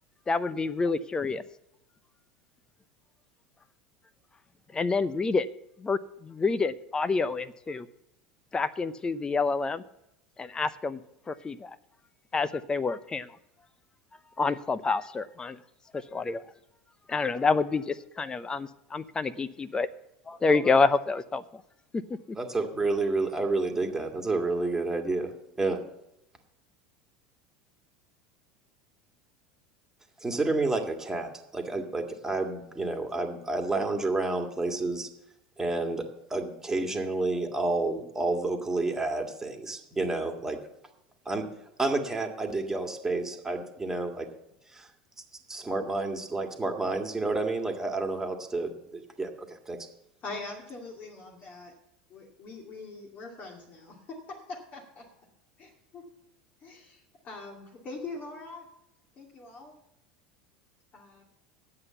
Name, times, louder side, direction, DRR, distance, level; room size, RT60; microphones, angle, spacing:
voice 1, 0.3-1.4 4.7-5.5 5.8-7.9 8.5-9.8 10.4-11.0 11.3-11.8 12.3-13.3 14.4-15.6 15.9-16.4 17.1-19.9 20.3-21.6 22.3-22.4, left 4 dB, 20° left, 15 dB, 0.7 m, -28 dB
voice 2, 22.4-25.3 25.6-25.8 30.2-35.1 35.6-36.1 36.3-40.6 41.3-41.5 41.8-44.3 44.7-44.9 45.5-49.8, right 3 dB, 10° right, 3 dB, 1.9 m, -30 dB
voice 3, 50.2-51.7 52.1-55.1 55.6-56.1 56.6-58.7 59.2-59.8 60.9-61.2, left 3 dB, 40° left, 0 dB, 2.4 m, -43 dB
9.8 x 8.1 x 7.0 m, 0.83 s
hypercardioid pair, 80°, 4 cm